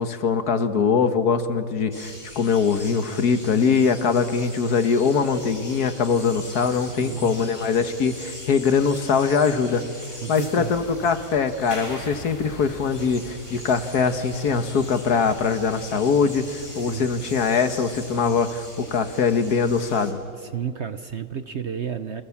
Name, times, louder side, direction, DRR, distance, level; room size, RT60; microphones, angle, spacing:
voice 1, 0.0-9.8 10.3-20.2, left 5 dB, 65° left, 9 dB, 1.8 m, -22 dB
sound 1, 1.9-20.1, left 1 dB, 15° left, 4.1 m, -41 dB
voice 2, 6.9-7.3 10.2-10.8 16.7-17.1 20.3-22.2, right 8 dB, 50° right, 10 dB, 0.9 m, -31 dB
29.0 x 26.0 x 7.2 m, 2.3 s
omnidirectional pair, 1.8 m